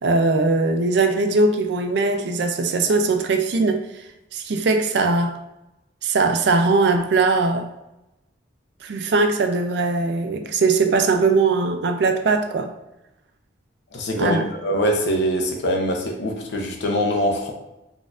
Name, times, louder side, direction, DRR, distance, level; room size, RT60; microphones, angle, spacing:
voice 1, 0.0-3.9 4.3-5.4 6.0-7.7 8.8-12.7 14.2-14.4, right 3 dB, 60° right, 0.4 m, -20 dB
voice 2, 13.9-17.5, equal, 65° left, 0.6 m, -23 dB
4.1 x 2.5 x 2.4 m
head